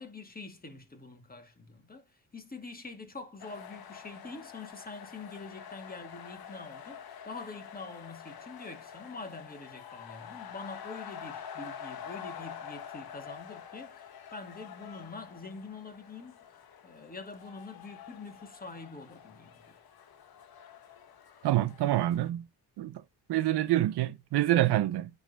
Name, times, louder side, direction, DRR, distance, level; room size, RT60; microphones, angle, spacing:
voice 1, 0.0-2.1 2.3-16.4 16.8-19.8, left 3 dB, 20° left, 2.2 m, -45 dB
sound 1, 3.4-22.3, left 8 dB, 60° left, 1.4 m, -47 dB
voice 2, 21.4-22.4 22.8-23.0 23.3-25.1, right 14 dB, 70° right, 0.8 m, -26 dB
9.1 x 3.9 x 4.2 m
supercardioid pair, 60°, 42 cm